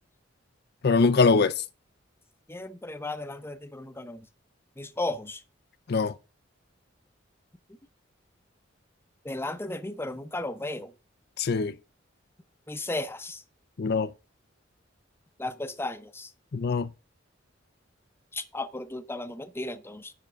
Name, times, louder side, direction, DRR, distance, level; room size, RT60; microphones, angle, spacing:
voice 1, 0.8-1.6 5.9-6.1 11.4-11.7 13.8-14.1 16.5-16.9, left 4 dB, 55° left, 0.5 m, -23 dB
voice 2, 2.5-4.3 4.8-5.4 9.2-10.9 12.7-13.4 15.4-16.3 18.3-20.1, left 2 dB, 10° left, 0.7 m, -35 dB
10.0 x 3.6 x 6.8 m
head